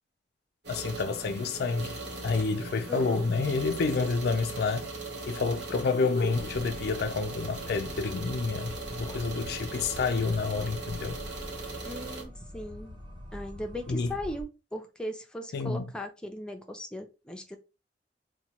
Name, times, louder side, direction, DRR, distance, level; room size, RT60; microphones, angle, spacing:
sound 1, 0.6-12.2, right 2 dB, 80° right, 0.9 m, -39 dB
voice 1, 0.7-4.9 5.3-11.2 13.9-14.1 15.5-15.9, left 4 dB, 60° left, 0.4 m, -29 dB
voice 2, 2.9-3.3 11.8-12.9 13.3-17.6, left 1 dB, 5° left, 0.5 m, -38 dB
sound 2, 6.4-14.4, left 1 dB, 25° right, 0.9 m, -45 dB
2.9 x 2.2 x 4.1 m
head